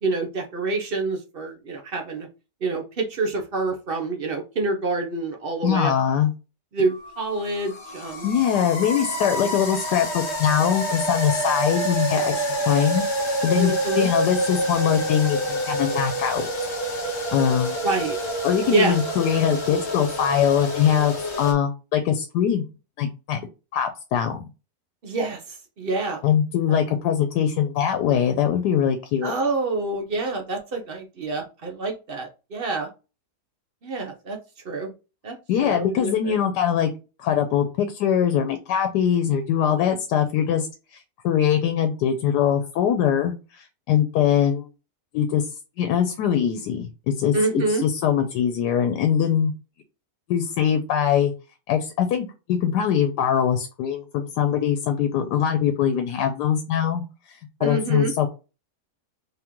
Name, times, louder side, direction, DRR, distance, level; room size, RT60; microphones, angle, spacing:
voice 1, 0.0-2.3 2.6-5.9 6.7-8.3 13.6-14.1 17.8-18.2 18.7-19.0 25.0-26.2 26.7-26.8 29.2-32.9 33.8-34.4 34.6-34.9 35.2-35.4 35.6-36.3 47.3-47.8 57.6-58.1, right 3 dB, 50° right, 3 dB, 0.7 m, -27 dB
voice 2, 5.6-6.3 8.2-16.4 17.3-17.8 18.4-22.6 23.0-23.4 23.7-24.5 26.2-29.3 35.5-36.9 37.2-40.7 40.9-44.7 45.1-45.4 45.8-49.5 50.3-51.3 51.7-57.0 57.3-58.3, left 8 dB, 85° left, 7 dB, 1.2 m, -22 dB
sound 1, 6.9-21.5, equal, 45° left, 1.3 m, -28 dB
3.7 x 3.0 x 3.5 m, 0.31 s
omnidirectional pair, 1.7 m